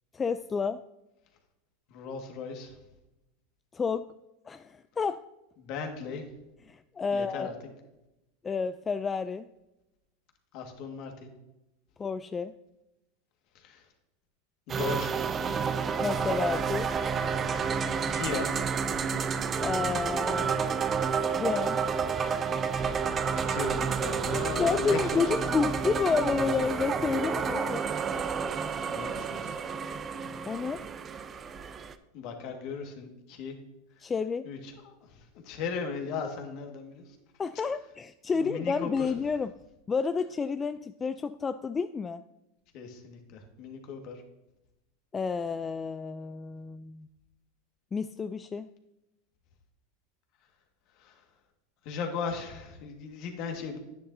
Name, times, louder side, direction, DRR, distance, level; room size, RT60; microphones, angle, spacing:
voice 1, 0.1-0.8 3.7-4.1 4.5-5.2 6.7-7.5 8.4-9.5 12.0-12.5 16.0-16.9 19.6-20.8 21.3-21.8 24.6-27.8 30.5-30.8 34.0-34.5 37.4-39.5 39.9-42.2 45.1-47.1 47.9-48.7, left 5 dB, 20° left, 11 dB, 0.3 m, -30 dB
voice 2, 1.9-2.8 5.6-6.3 7.1-7.5 10.5-11.3 13.6-13.8 14.7-15.1 18.1-18.5 22.9-23.0 23.3-25.2 28.9-29.6 32.1-33.6 34.5-37.2 38.4-39.1 42.7-44.2 51.0-51.2 51.8-53.8, left 5 dB, 55° left, 3 dB, 1.8 m, -37 dB
sound 1, 14.7-31.9, right 6 dB, 30° right, 0.6 m, -30 dB
10.5 x 10.0 x 2.7 m, 0.95 s
hypercardioid pair, 95°, 0 cm